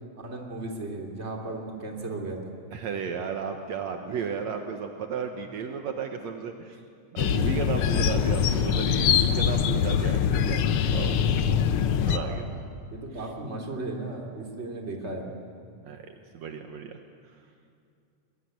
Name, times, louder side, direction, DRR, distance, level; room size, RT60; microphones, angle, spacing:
voice 1, 0.1-2.5 12.0-12.4 12.9-15.3, right 2 dB, 20° right, 1 dB, 3.1 m, -36 dB
voice 2, 2.7-6.8 7.1-11.2 12.0-12.5 13.1-13.3 15.8-17.0, right 6 dB, 70° right, 5 dB, 2.3 m, -34 dB
sound 1, 7.2-12.2, left 8 dB, 65° left, 1.5 m, -23 dB
23.5 x 22.5 x 9.4 m, 2.5 s
omnidirectional pair, 3.4 m